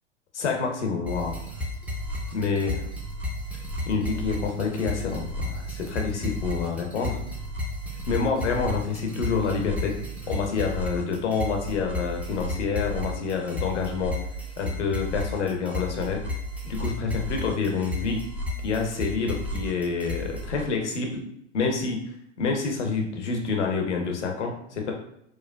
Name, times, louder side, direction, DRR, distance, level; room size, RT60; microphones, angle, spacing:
voice 1, 0.3-1.4 2.3-2.9 3.9-7.2 8.1-10.0 10.3-14.1 14.6-16.2 16.6-18.2 18.6-21.2 21.5-22.0 22.4-24.9, left 5 dB, 70° left, 2 dB, 0.8 m, -27 dB
sound 1, 1.1-20.6, left 1 dB, 5° right, 0.5 m, -33 dB
4.7 x 2.2 x 2.2 m, 0.74 s
figure-of-eight pair, 95°, 36 cm